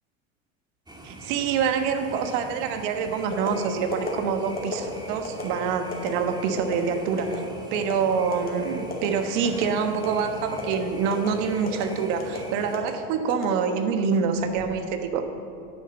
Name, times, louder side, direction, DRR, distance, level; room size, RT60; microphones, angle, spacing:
sound 1, 0.9-12.8, right 1 dB, 10° right, 1.7 m, -43 dB
voice 1, 1.0-7.4 7.7-15.2, right 6 dB, 65° right, 7 dB, 1.3 m, -26 dB
sound 2, 3.3-3.5 3.9-4.1 4.6-4.8 5.2-5.4 5.9-6.1 6.6-6.8 7.2-7.4 7.7-8.0 8.3-8.5 8.9-9.1 9.4-9.7 10.0-10.2 10.6-10.8 11.1-11.3 11.7-11.8 12.2-12.4 12.7-12.9 13.3-13.9 14.4-14.7, left 4 dB, 20° left, 2.5 m, -33 dB
10.0 x 7.0 x 7.6 m, 2.6 s
hypercardioid pair, 95°, 40 cm